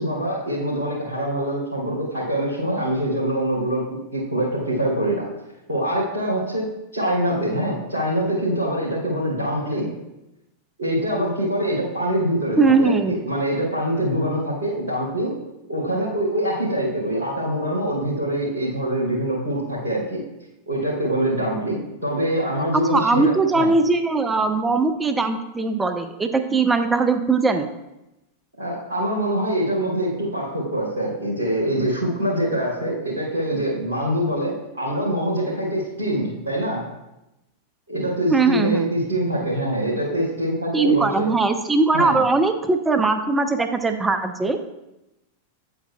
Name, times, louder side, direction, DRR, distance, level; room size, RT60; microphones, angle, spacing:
voice 1, 0.0-3.9 4.1-5.3 5.7-9.9 10.8-15.3 15.7-20.2 20.7-23.7 28.6-36.8 37.9-41.3 41.9-42.2, right 1 dB, 70° right, -9 dB, 2.7 m, -24 dB
voice 2, 12.6-13.1 22.9-27.7 38.3-38.9 40.7-44.6, right 3 dB, 10° right, 7 dB, 0.6 m, -20 dB
9.2 x 8.0 x 2.3 m, 0.95 s
figure-of-eight pair, 90°, 0 cm